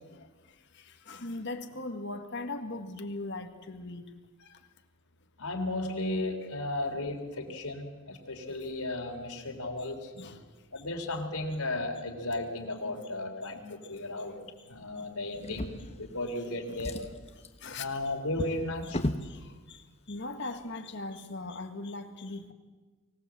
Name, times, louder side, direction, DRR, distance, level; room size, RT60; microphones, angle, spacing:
voice 1, 0.1-4.1 4.4-4.6 7.5-7.6 8.5-8.7 10.1-10.5 13.8-14.1 14.4-14.5 15.0-15.1 16.1-16.2 16.7-17.1 17.3-17.9 18.8-18.9 19.2-22.5, left 2 dB, 50° left, 7 dB, 1.7 m, -40 dB
voice 2, 5.4-10.1 10.7-14.4 14.7-17.0 17.8-19.0, left 2 dB, 90° left, 2 dB, 3.5 m, -35 dB
Drawer open or close, 15.4-16.4 16.7-19.3 20.2-20.3 20.7-20.8, left 1 dB, 30° left, 1.1 m, -37 dB
24.5 x 18.0 x 7.7 m, 1.3 s
head